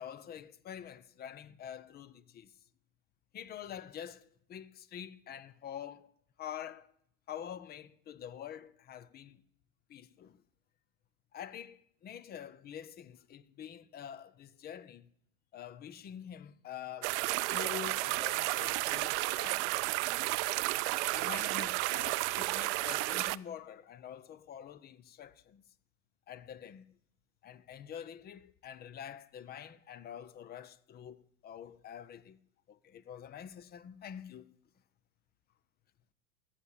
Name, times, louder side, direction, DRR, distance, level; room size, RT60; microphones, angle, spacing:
voice 1, 0.0-2.5 3.3-6.1 6.4-6.9 7.3-9.4 9.9-10.4 11.3-15.1 15.5-19.8 21.1-25.6 26.3-26.9 27.4-32.4 32.7-34.6, left 9 dB, 25° left, 0.6 m, -46 dB
sound 1, 17.0-23.4, right 21 dB, 55° right, 0.5 m, -32 dB
15.0 x 7.3 x 8.4 m
hypercardioid pair, 110°, 42 cm